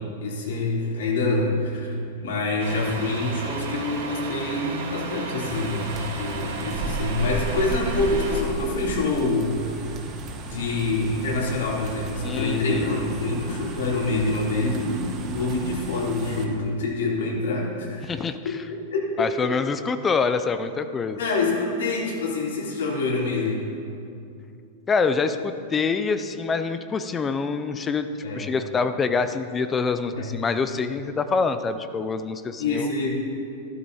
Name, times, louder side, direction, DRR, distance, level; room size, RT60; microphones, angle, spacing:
voice 1, 0.0-9.8 10.4-18.1 18.4-18.5 18.9-19.5 21.2-23.6 28.2-28.5 30.1-30.3 32.6-33.2, left 2 dB, 85° left, -4 dB, 3.8 m, -26 dB
Truck, 2.6-8.4, right 4 dB, 60° right, 2.4 m, -34 dB
sound 1, 5.5-16.4, right 2 dB, 20° right, 1.0 m, -34 dB
voice 2, 12.2-12.9 18.1-18.6 19.2-21.2 24.9-28.1 28.3-32.9, left 5 dB, 10° left, 10 dB, 0.4 m, -25 dB
14.5 x 12.5 x 4.2 m, 2.6 s
supercardioid pair, 180°, 0 cm